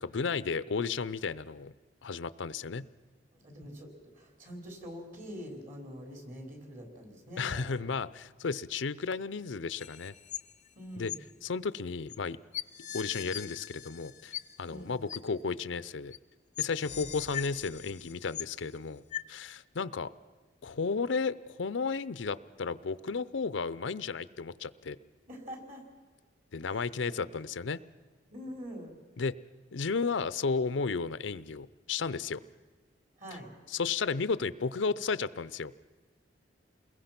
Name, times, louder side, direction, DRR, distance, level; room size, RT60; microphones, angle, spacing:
voice 1, 0.0-1.7 2.0-2.8 7.4-10.1 11.0-11.1 11.4-12.4 12.9-16.2 16.6-19.0 19.3-20.1 20.6-25.0 26.5-27.8 29.2-29.3 29.7-32.4 33.7-35.7, left 4 dB, 80° left, 16 dB, 0.6 m, -33 dB
voice 2, 3.3-7.8 10.7-11.2 14.7-14.9 16.9-17.1 25.3-25.8 26.6-27.2 28.3-29.0 33.2-33.5, equal, 45° right, 2 dB, 4.6 m, -45 dB
sound 1, 9.8-10.7 11.1-11.2 12.1-12.2 12.5-14.8 15.1-15.2 16.1-16.2 16.6-18.7 19.1-19.2, left 11 dB, 40° left, 0.6 m, -40 dB
28.5 x 21.5 x 5.9 m, 1.4 s
head